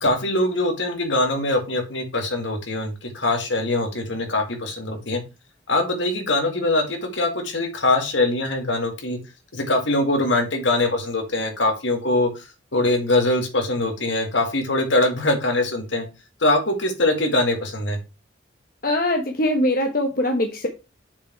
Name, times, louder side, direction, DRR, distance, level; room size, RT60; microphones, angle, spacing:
voice 1, 0.0-5.2 5.7-9.2 9.5-12.4 12.7-16.1 16.4-18.0, left 2 dB, 75° left, 4 dB, 2.1 m, -22 dB
voice 2, 18.8-20.7, left 1 dB, 45° left, 4 dB, 1.1 m, -22 dB
7.1 x 5.0 x 4.6 m, 0.28 s
head